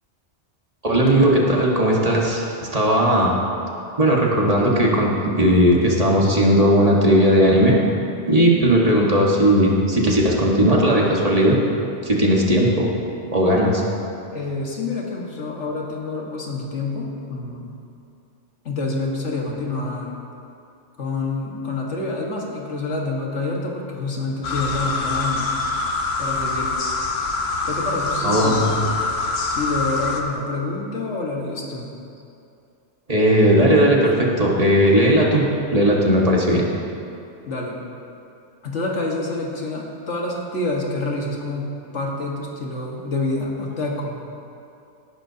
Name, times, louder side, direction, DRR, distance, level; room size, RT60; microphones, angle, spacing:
voice 1, 0.8-3.3 4.0-7.8 8.3-11.6 12.0-12.9 13.3-13.8 28.2-28.7 33.1-35.4 35.7-36.7, equal, 35° right, -3 dB, 1.6 m, -17 dB
voice 2, 14.3-17.7 18.7-20.2 21.0-25.5 26.2-26.7 27.7-28.7 29.5-31.9 37.5-37.8 38.6-44.2, left 2 dB, 90° left, -2 dB, 2.0 m, -27 dB
sound 1, 24.4-30.2, left 3 dB, 65° left, 1.2 m, -25 dB
18.5 x 11.0 x 2.8 m, 2.6 s
omnidirectional pair, 1.2 m